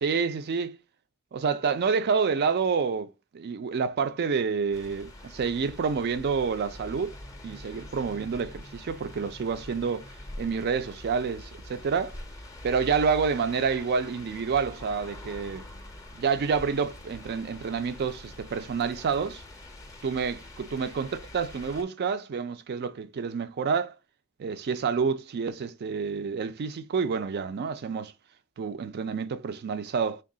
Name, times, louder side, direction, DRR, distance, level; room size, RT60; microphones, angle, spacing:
voice 1, 0.0-0.8 1.3-3.1 3.3-7.1 7.4-10.1 10.4-12.2 12.6-15.7 16.1-19.4 20.0-21.1 21.3-23.9 24.4-28.1 28.6-30.2, right 5 dB, 50° right, 0.4 m, -28 dB
sound 1, 4.7-21.8, left 1 dB, 15° left, 0.5 m, -44 dB
3.3 x 2.3 x 3.7 m
head